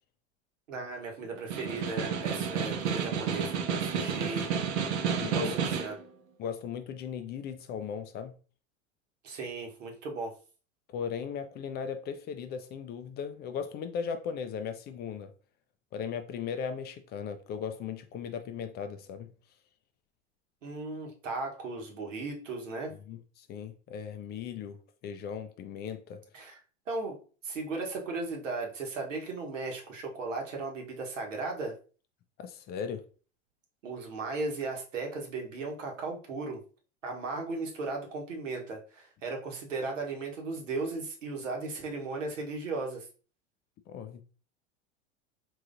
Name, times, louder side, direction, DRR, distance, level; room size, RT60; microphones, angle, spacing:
voice 1, 0.7-3.5 3.8-4.5 5.3-5.4 5.8-6.0 9.2-10.3 20.6-22.9 26.3-26.6 26.9-27.2 27.4-31.7 33.8-36.6 37.0-43.1, right 3 dB, 80° right, 1.2 m, -36 dB
Snare drum, 1.4-6.0, right 6 dB, 65° right, 0.8 m, -31 dB
voice 2, 5.2-5.6 6.4-8.3 10.9-15.3 15.9-19.3 23.1-24.8 25.0-26.2 32.4-33.0 43.9-44.2, left 7 dB, 30° left, 0.4 m, -37 dB
3.7 x 3.1 x 2.5 m
hypercardioid pair, 95°, 37 cm